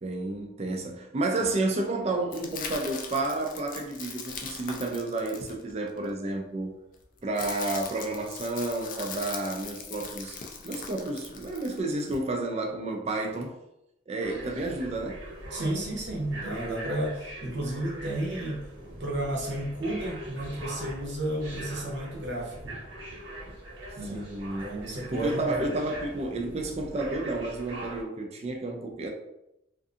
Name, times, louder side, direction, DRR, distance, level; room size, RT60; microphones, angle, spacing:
voice 1, 0.0-6.8 7.2-13.6 14.1-15.2 24.1-24.7 25.1-29.1, right 2 dB, 30° right, 0.4 m, -31 dB
sound 1, 2.3-6.0 6.9-12.2, left 5 dB, 45° left, 0.3 m, -40 dB
sound 2, 14.2-28.0, right 1 dB, 85° right, 1.0 m, -42 dB
voice 2, 15.5-18.6 19.0-22.8 24.0-24.3 24.6-25.7, right 1 dB, 60° right, 0.7 m, -32 dB
2.5 x 2.4 x 2.5 m
head